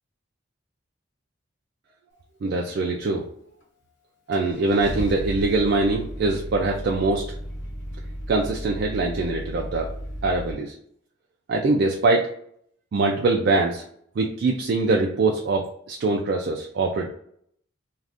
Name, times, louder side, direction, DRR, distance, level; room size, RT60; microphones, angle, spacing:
voice 1, 2.4-3.3 4.3-7.2 8.3-9.9 10.2-10.7 11.5-12.3 12.9-13.8 14.2-17.1, right 3 dB, 50° right, 0 dB, 0.3 m, -23 dB
Car / Engine starting, 3.6-3.7 4.3-10.5, equal, 60° left, 0.8 m, -34 dB
2.4 x 2.3 x 3.4 m, 0.67 s
head